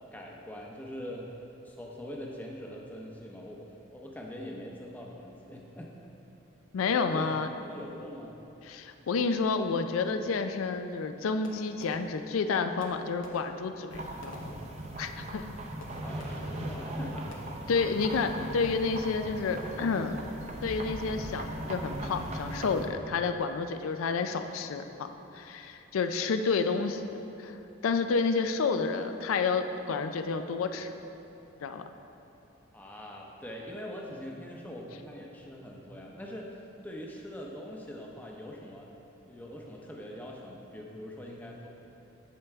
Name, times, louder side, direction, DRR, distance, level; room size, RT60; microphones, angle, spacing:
voice 1, 0.1-1.3 1.6-5.9 7.0-7.3 7.7-8.4 16.0-17.3 26.2-26.3 32.7-38.9 39.2-41.7, equal, 10° left, -1 dB, 0.6 m, -43 dB
voice 2, 6.7-7.5 8.6-14.5 15.0-15.4 17.7-20.2 20.6-25.1 25.3-27.6 27.8-30.9 31.6-31.9, left 4 dB, 90° left, 8 dB, 0.4 m, -30 dB
Fireworks, 11.4-12.5 12.8-15.2 15.8-16.7 17.3-17.7 18.0-18.5, left 1 dB, 70° left, 0.9 m, -52 dB
sound 1, 13.9-22.9, right 1 dB, 30° right, 0.6 m, -38 dB
8.7 x 6.9 x 3.5 m, 2.9 s
head